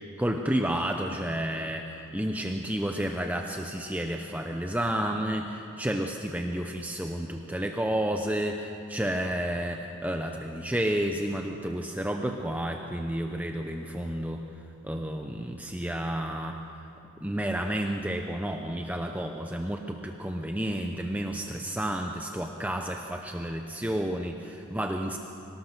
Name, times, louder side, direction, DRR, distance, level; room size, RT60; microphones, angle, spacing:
voice 1, 0.2-14.4 14.8-16.6 17.2-25.2, right 1 dB, 5° right, 3 dB, 0.7 m, -31 dB
24.5 x 18.0 x 6.6 m, 2.7 s
head